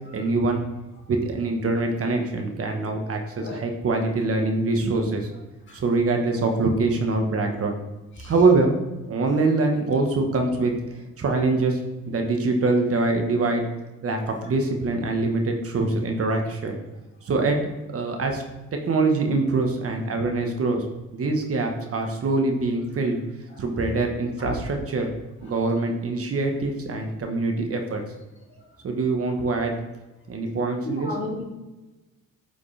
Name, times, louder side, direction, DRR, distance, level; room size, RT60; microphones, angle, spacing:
voice 1, 0.1-0.6 1.1-5.3 5.7-7.7 8.2-8.7 9.1-10.7 11.2-11.8 12.1-13.6 14.0-16.8 17.2-17.6 17.9-18.4 18.9-20.8 21.1-23.2 23.6-25.1 25.4-28.0 28.8-29.7 30.3-31.1, right 3 dB, 50° right, 3 dB, 1.3 m, -24 dB
voice 2, 30.8-31.4, left 2 dB, 40° left, -2 dB, 2.4 m, -32 dB
8.7 x 5.0 x 3.4 m, 1.1 s
cardioid pair, 90°, 30 cm